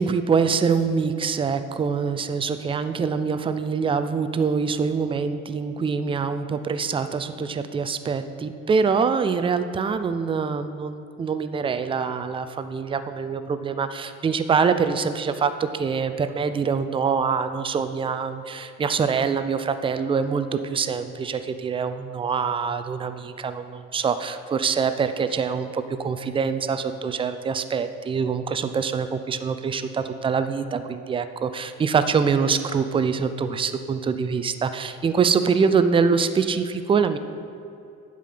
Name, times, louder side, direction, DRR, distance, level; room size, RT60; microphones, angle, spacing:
voice 1, 0.0-37.2, right 5 dB, 15° right, 10 dB, 0.4 m, -24 dB
11.0 x 4.8 x 5.8 m, 2.6 s
figure-of-eight pair, 50°, 45 cm